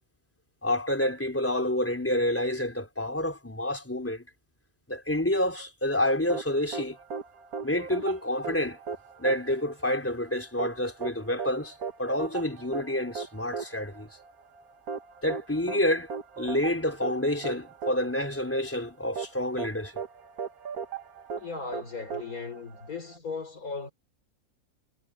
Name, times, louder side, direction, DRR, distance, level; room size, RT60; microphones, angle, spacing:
voice 1, 0.6-4.2 4.9-7.0 7.6-8.8 9.2-14.1 15.2-16.1 16.4-20.0, left 1 dB, 10° left, 4.2 m, -28 dB
sound 1, 6.3-23.2, right 6 dB, 85° right, 1.8 m, -38 dB
voice 2, 21.4-23.9, left 4 dB, 85° left, 4.8 m, -37 dB
omnidirectional pair, 1.5 m